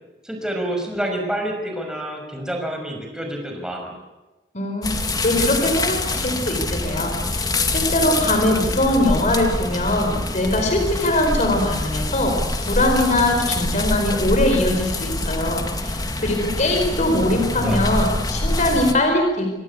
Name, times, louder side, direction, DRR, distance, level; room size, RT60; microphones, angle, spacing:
voice 1, 0.2-3.9 16.3-16.4 17.3-17.8, right 1 dB, 5° right, 2 dB, 6.0 m, -28 dB
voice 2, 4.5-19.5, left 1 dB, 45° left, 4 dB, 4.9 m, -21 dB
sound 1, 4.8-18.9, left 2 dB, 20° left, 2.2 m, -25 dB
26.0 x 19.0 x 8.5 m, 1.1 s
head